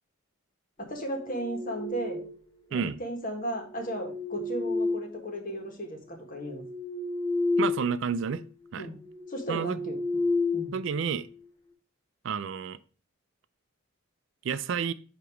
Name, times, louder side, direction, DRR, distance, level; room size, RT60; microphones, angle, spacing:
voice 1, 0.8-2.2 2.7-6.6 8.8-9.0 9.3-10.0 10.5-10.7, equal, 40° left, 2 dB, 1.5 m, -35 dB
sound 1, 1.0-2.5 3.5-5.6 6.1-7.9 8.2-8.5 9.0-11.3, left 3 dB, 20° left, 0.9 m, -32 dB
voice 2, 7.6-8.4 8.7-8.9 9.5-9.8 10.7-11.3 12.2-12.8 14.4-14.9, right 6 dB, 65° right, 14 dB, 0.4 m, -30 dB
8.2 x 3.0 x 4.9 m, 0.39 s
head